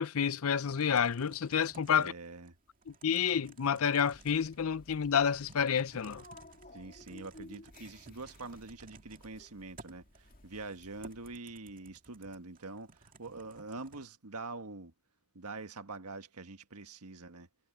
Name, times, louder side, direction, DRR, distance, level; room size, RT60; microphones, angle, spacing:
voice 1, 0.0-2.1 2.9-6.2, left 7 dB, 65° left, 0.6 m, -29 dB
Typing, 0.7-14.1, right 3 dB, 40° right, 2.2 m, -58 dB
voice 2, 1.9-2.6 6.7-14.9 15.3-17.5, right 3 dB, 85° right, 1.6 m, -45 dB
sound 1, 4.1-11.4, left 1 dB, 40° left, 2.2 m, -56 dB
head